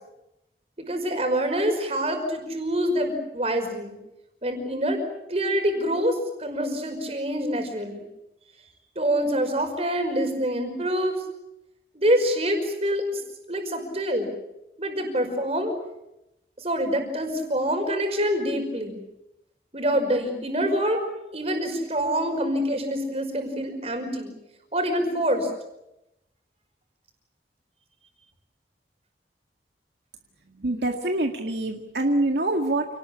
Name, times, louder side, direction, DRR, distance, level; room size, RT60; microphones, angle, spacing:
voice 1, 0.8-3.9 4.4-5.0 5.3-8.0 9.0-11.2 11.9-13.2 13.5-14.3 14.8-15.7 16.6-19.0 19.7-21.0 21.3-24.3 24.7-25.5, equal, 35° right, 5 dB, 5.4 m, -26 dB
voice 2, 30.6-32.9, right 2 dB, 75° right, 3 dB, 2.1 m, -25 dB
29.0 x 19.0 x 8.7 m, 0.90 s
head